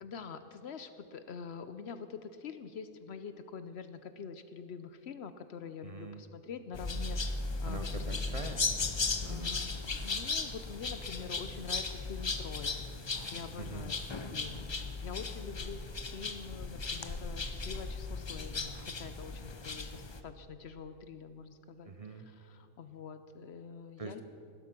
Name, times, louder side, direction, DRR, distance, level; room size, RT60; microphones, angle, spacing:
voice 1, 0.0-8.3 9.2-13.9 14.3-14.7 15.0-21.9 22.3-24.2, left 6 dB, 60° left, 10 dB, 0.8 m, -45 dB
voice 2, 5.8-6.2 7.6-8.7 9.2-9.5 13.6-14.0 21.9-22.3 24.0-24.2, right 3 dB, 35° right, 7 dB, 0.6 m, -43 dB
sound 1, 6.7-20.2, left 3 dB, 40° left, 0.3 m, -37 dB
16.0 x 12.5 x 5.9 m, 2.9 s
omnidirectional pair, 1.5 m